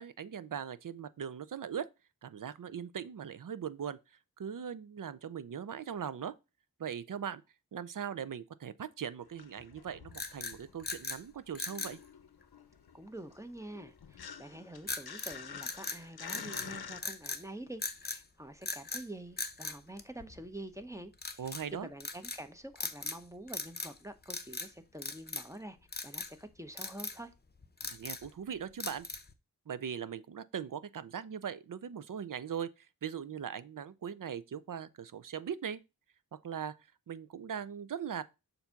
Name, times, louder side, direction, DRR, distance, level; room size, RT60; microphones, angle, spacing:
voice 1, 0.0-1.9 2.2-4.0 4.4-6.3 6.8-7.4 7.7-12.0 21.4-21.9 27.9-29.1 29.7-35.8 36.3-36.8 37.1-38.2, right 8 dB, 60° right, 0.5 m, -40 dB
sound 1, 9.2-11.1 11.4-17.0, left 7 dB, 85° left, 0.7 m, -48 dB
sound 2, 10.1-11.2 11.5-12.0 14.9-15.4 15.6-16.7 17.0-17.4 17.8-18.2 18.6-19.1 19.4-20.6 21.2-21.6 22.0-22.4 22.8-23.2 23.5-24.0 24.2-24.7 25.0-25.6 25.9-26.3 26.8-27.2 27.6-28.3 28.8-29.3, left 3 dB, 25° left, 0.7 m, -39 dB
voice 2, 12.9-25.8 26.0-27.3, right 1 dB, 10° right, 0.7 m, -47 dB
6.9 x 2.7 x 5.7 m
wide cardioid pair, 70°, 37 cm